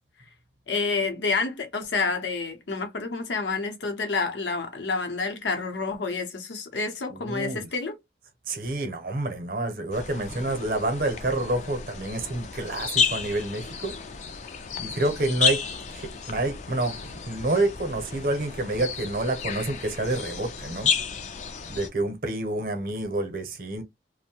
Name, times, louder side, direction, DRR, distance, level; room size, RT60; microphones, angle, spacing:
voice 1, 0.7-7.9, left 4 dB, 80° left, 0.7 m, -29 dB
voice 2, 7.1-7.7 8.5-13.9 14.8-15.6 15.9-20.9 21.7-23.8, right 2 dB, 50° right, 0.7 m, -28 dB
sound 1, 9.9-21.9, left 6 dB, 40° left, 0.3 m, -32 dB
2.6 x 2.1 x 2.8 m
head